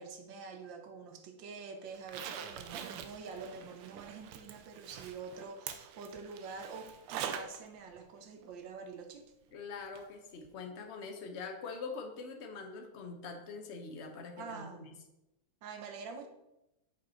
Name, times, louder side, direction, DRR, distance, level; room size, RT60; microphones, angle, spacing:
voice 1, 0.0-9.3 14.4-14.9 15.6-16.3, right 5 dB, 65° right, 6 dB, 1.5 m, -46 dB
Zipper (clothing), 1.9-7.6 7.9-8.0 9.9-10.0 10.4-10.5, right 8 dB, 90° right, 1.6 m, -44 dB
voice 2, 9.5-15.0, left 4 dB, 50° left, 4 dB, 0.8 m, -44 dB
7.1 x 5.2 x 4.4 m, 0.90 s
omnidirectional pair, 2.4 m